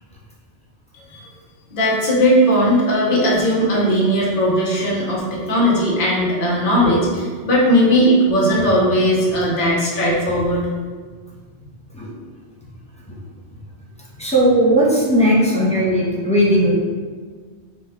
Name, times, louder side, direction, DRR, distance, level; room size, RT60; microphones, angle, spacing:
voice 1, 1.7-10.7, equal, 50° left, -5 dB, 1.0 m, -17 dB
voice 2, 14.2-16.8, right 1 dB, 10° left, -7 dB, 0.6 m, -16 dB
4.3 x 2.2 x 3.5 m, 1.5 s
omnidirectional pair, 1.2 m